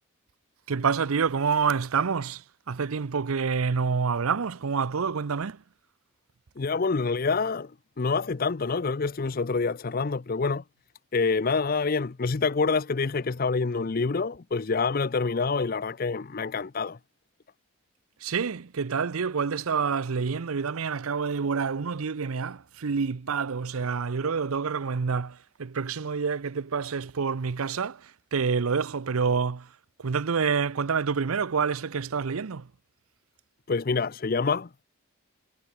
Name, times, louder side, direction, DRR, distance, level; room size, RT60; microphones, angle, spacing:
voice 1, 0.7-5.6 18.2-29.7 30.0-32.7, right 5 dB, 80° right, 0.6 m, -27 dB
voice 2, 6.6-7.7 8.0-10.6 11.1-17.0 33.7-34.7, left 4 dB, 40° left, 0.5 m, -27 dB
head